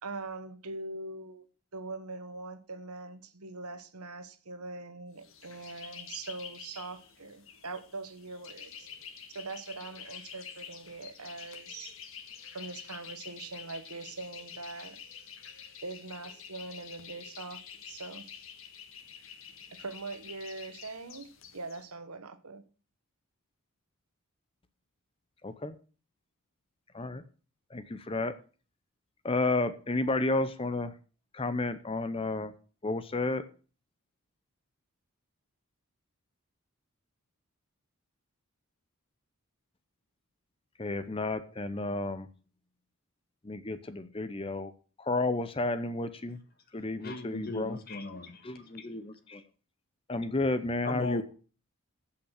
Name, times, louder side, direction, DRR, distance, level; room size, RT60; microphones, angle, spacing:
voice 1, 0.0-1.4 1.7-8.9 9.3-12.0 12.5-15.0 15.8-17.6 17.9-18.2 19.7-22.6, right 3 dB, 90° right, 1.3 m, -42 dB
sound 1, 5.2-21.8, left 7 dB, 65° left, 1.7 m, -48 dB
voice 2, 25.4-25.7 26.9-27.2 27.7-28.4 29.2-30.9 31.3-32.5 32.8-33.4 40.8-42.3 43.4-44.7 45.0-46.4 46.7-47.8 48.4-49.4 50.1-51.2, left 2 dB, 25° left, 0.7 m, -32 dB
voice 3, 47.0-48.8 50.8-51.2, left 2 dB, 45° left, 1.9 m, -38 dB
15.5 x 5.8 x 6.4 m
head